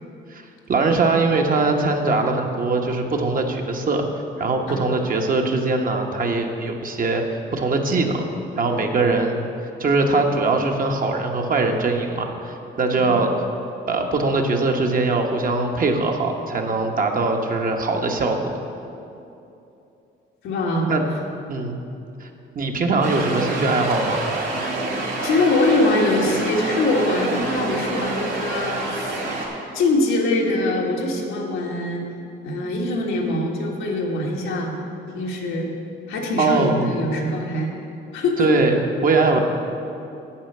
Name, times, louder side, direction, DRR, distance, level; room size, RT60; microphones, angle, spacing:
voice 1, 0.3-4.1 4.4-7.2 7.5-8.3 8.6-9.4 9.8-13.3 13.9-18.4 20.9-21.0 21.5-21.8 22.2-22.3 22.5-24.2 36.4-36.9 38.4-39.4, right 3 dB, 45° right, 3 dB, 1.1 m, -21 dB
voice 2, 20.4-20.9 25.2-29.2 29.7-32.0 32.4-34.7 35.1-35.7 36.1-37.7 38.1-38.5 39.3-39.4, left 2 dB, 90° left, -1 dB, 1.6 m, -23 dB
sound 1, 23.0-29.5, right 2 dB, 60° right, 2.7 m, -27 dB
8.7 x 5.7 x 7.8 m, 2.8 s
cardioid pair, 90°, 20 cm